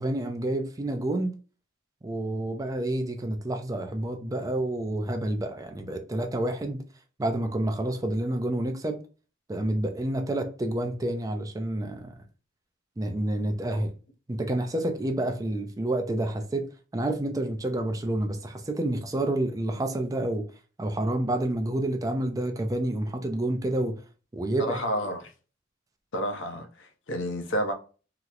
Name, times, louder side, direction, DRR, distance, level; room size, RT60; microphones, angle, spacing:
voice 1, 0.0-1.3 2.0-6.8 7.2-9.0 9.5-12.1 13.0-13.9 14.3-16.7 16.9-20.4 20.8-24.0 24.3-24.8, right 1 dB, 15° right, 0.4 m, -29 dB
voice 2, 24.6-25.3 26.1-27.7, equal, 65° left, 0.6 m, -30 dB
2.9 x 2.0 x 3.6 m
head